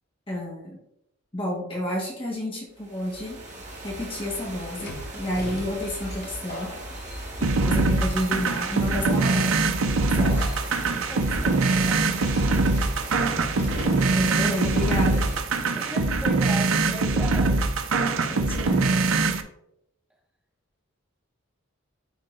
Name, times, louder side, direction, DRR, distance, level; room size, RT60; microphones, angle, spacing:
voice 1, 0.3-0.8 1.3-3.4 3.8-6.7 7.4-9.5 10.0-10.5 14.1-15.3 18.3-18.9, left 1 dB, 25° left, -4 dB, 1.5 m, -30 dB
sound 1, 2.7-15.4, right 1 dB, 35° right, 1.5 m, -38 dB
sound 2, 3.5-3.6 4.8-7.8 8.1-8.6 9.2-9.5 10.2-10.8 11.6-14.4 14.6-14.7 15.9-16.2, left 1 dB, 45° left, 1.0 m, -39 dB
sound 3, 7.4-19.4, right 3 dB, 75° right, 0.6 m, -23 dB
voice 2, 11.1-12.8 15.8-17.7 18.7-19.0, right 1 dB, 5° right, -2 dB, 1.3 m, -38 dB
10.0 x 3.8 x 2.5 m, 0.80 s
head